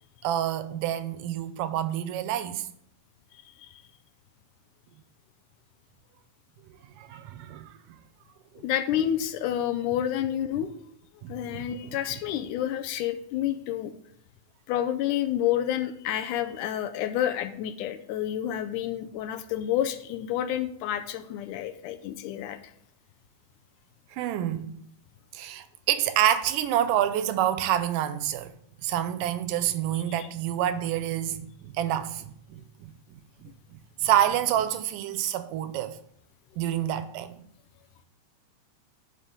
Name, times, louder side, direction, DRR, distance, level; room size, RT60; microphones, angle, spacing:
voice 1, 0.2-2.7 7.0-7.7 8.5-8.7 10.5-10.7 11.2-12.0 24.1-24.7 25.3-28.5 28.8-33.5 34.0-36.0 36.6-37.4, right 11 dB, 85° right, 2.2 m, -28 dB
voice 2, 8.6-10.7 11.3-13.9 14.7-22.6 30.2-30.3, left 11 dB, 80° left, 2.0 m, -29 dB
11.0 x 5.0 x 3.7 m
omnidirectional pair, 3.7 m